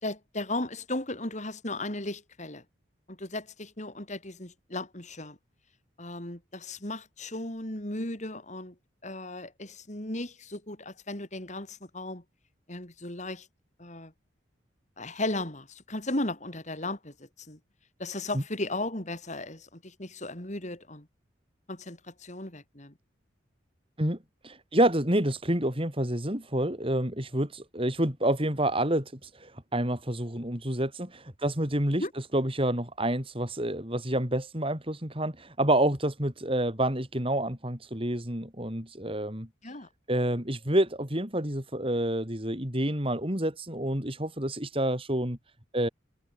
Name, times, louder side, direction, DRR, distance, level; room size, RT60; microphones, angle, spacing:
voice 1, 0.0-2.6 3.1-5.4 6.0-8.7 9.0-12.2 12.7-13.5 13.8-14.1 15.0-17.6 18.0-21.1 21.7-22.9 32.0-32.1 39.6-39.9, left 2 dB, 40° left, 3.9 m, -36 dB
voice 2, 24.4-32.0 32.3-39.5 40.1-45.4 45.7-45.9, right 1 dB, 30° right, 4.8 m, -28 dB
head